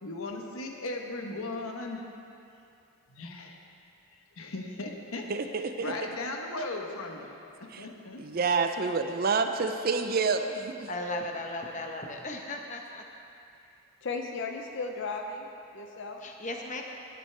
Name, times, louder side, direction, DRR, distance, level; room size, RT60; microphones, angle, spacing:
voice 1, 0.0-2.0 3.1-3.6 4.4-5.2 5.8-8.2, left 2 dB, 75° left, 2 dB, 1.1 m, -37 dB
voice 2, 5.3-5.9 7.7-7.9 8.2-10.9, right 4 dB, 45° right, 7 dB, 0.5 m, -28 dB
voice 3, 10.9-13.0 16.2-16.8, left 1 dB, 35° left, 2 dB, 0.9 m, -36 dB
voice 4, 14.0-16.2, left 4 dB, 55° left, 3 dB, 0.5 m, -36 dB
16.5 x 9.2 x 3.3 m, 2.6 s
head